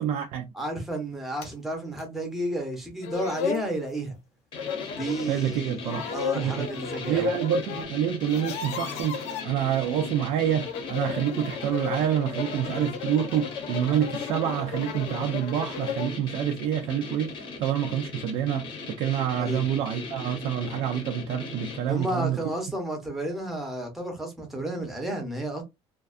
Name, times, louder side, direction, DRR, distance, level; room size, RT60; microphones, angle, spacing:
voice 1, 0.0-0.5 5.3-6.1 6.3-6.7 7.1-17.3 17.6-18.6 19.0-22.4, right 10 dB, 70° right, 0.4 m, -27 dB
voice 2, 0.5-4.2 4.9-5.8 6.1-7.3 19.4-19.6 21.9-25.6, right 1 dB, ahead, 0.7 m, -32 dB
sound 1, 1.4-1.5 2.0-2.1 2.7-2.8 3.0-3.7 4.6-5.3 5.8-7.9 8.2-9.5 10.5-16.2, left 7 dB, 75° left, 0.4 m, -34 dB
sound 2, 4.5-22.2, left 4 dB, 45° left, 0.7 m, -39 dB
2.5 x 2.2 x 2.4 m
cardioid pair, 170°, 12 cm